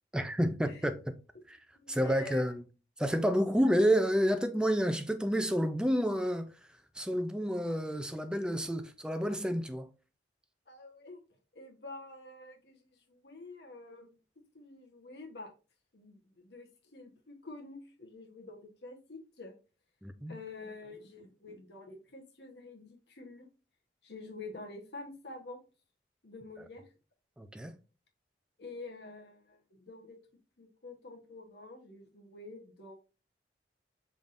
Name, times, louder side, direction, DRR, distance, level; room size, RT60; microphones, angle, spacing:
voice 1, 0.1-1.1 1.5-1.6 1.9-2.6 3.0-6.5 6.9-9.9 20.0-20.4 27.4-27.8, equal, 5° right, 0.4 m, -29 dB
voice 2, 1.7-2.5 10.7-11.2 11.5-14.1 14.5-15.5 15.9-19.5 20.3-23.4 24.0-25.6 26.2-26.8 28.6-30.2 30.6-32.9, left 3 dB, 70° left, 1.1 m, -48 dB
5.5 x 3.5 x 2.5 m
head